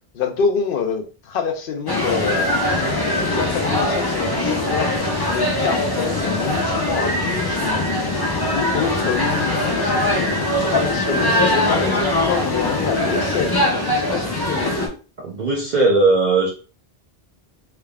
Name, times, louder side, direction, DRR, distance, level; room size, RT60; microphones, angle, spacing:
voice 1, 0.1-5.0 5.3-7.9 8.5-14.7, left 6 dB, 65° left, 5 dB, 0.8 m, -26 dB
sound 1, 1.9-14.9, left 1 dB, 25° left, 0.7 m, -21 dB
voice 2, 15.2-16.5, right 3 dB, 50° right, -1 dB, 0.7 m, -17 dB
3.5 x 3.4 x 2.3 m, 0.36 s
omnidirectional pair, 1.1 m